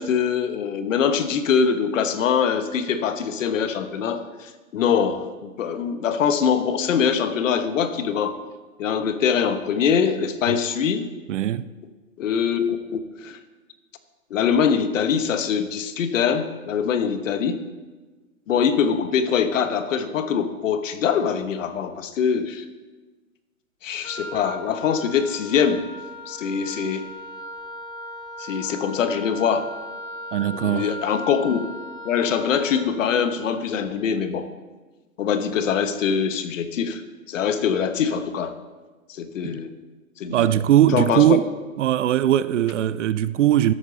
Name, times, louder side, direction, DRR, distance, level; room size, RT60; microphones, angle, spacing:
voice 1, 0.0-8.4 8.8-11.1 12.2-13.4 14.3-17.6 18.5-22.6 23.8-25.9 26.3-27.0 28.4-29.7 30.6-31.6 32.0-34.5 35.2-37.0 37.3-38.6 39.1-39.7 40.2-40.5 40.9-41.4, left 7 dB, 65° left, 1.1 m, -23 dB
voice 2, 11.3-11.7 30.3-30.9 39.4-39.6 40.3-41.5 41.8-43.7, right 12 dB, 60° right, 0.5 m, -20 dB
Wind instrument woodwind instrument, 24.0-32.9, left 1 dB, 10° left, 0.9 m, -38 dB
13.0 x 8.5 x 4.1 m
hypercardioid pair, 135°, 42 cm